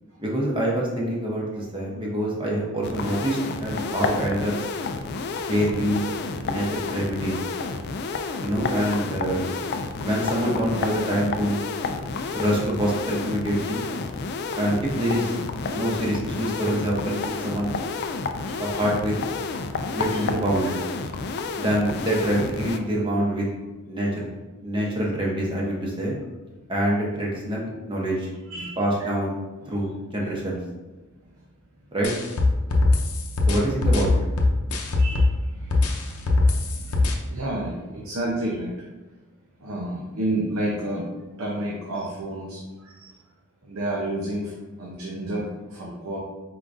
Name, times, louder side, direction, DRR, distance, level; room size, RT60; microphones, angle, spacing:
voice 1, 0.2-4.6 5.5-6.1 6.4-7.4 8.4-9.4 10.0-11.6 12.3-13.8 14.6-15.4 15.7-17.8 18.6-19.2 19.9-20.7 21.6-23.5 23.9-24.3 24.6-26.2 26.7-28.3 28.8-29.3 29.7-30.6 31.9-32.1 33.5-34.1, right 1 dB, 25° right, -3 dB, 0.8 m, -25 dB
sound 1, 2.8-22.8, left 4 dB, 50° left, 0.3 m, -30 dB
voice 2, 28.5-28.8 35.0-38.7 39.6-41.0 41.4-43.1 43.6-46.2, right 1 dB, 80° right, -3 dB, 0.7 m, -31 dB
sound 2, 32.0-35.4 35.7-37.1, left 2 dB, 85° left, 0.7 m, -21 dB
4.7 x 3.7 x 2.6 m, 1.2 s
head